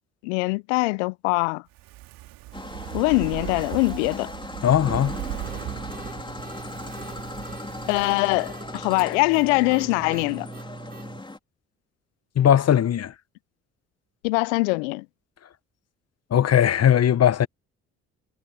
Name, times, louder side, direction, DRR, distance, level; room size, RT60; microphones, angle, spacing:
voice 1, 0.2-1.6 2.9-4.3 7.9-10.5 14.2-15.0, left 27 dB, 80° left, 0.7 m, -23 dB
Fire, 1.7-9.0 9.3-9.4, right 16 dB, 70° right, 2.3 m, -38 dB
sound 1, 2.5-11.4, left 2 dB, 15° left, 3.2 m, -38 dB
voice 2, 4.6-5.2 12.4-13.1 16.3-17.5, left 10 dB, 45° left, 1.2 m, -19 dB
sound 2, 5.4-11.2, right 3 dB, 25° right, 4.9 m, -41 dB
hypercardioid pair, 55°, 35 cm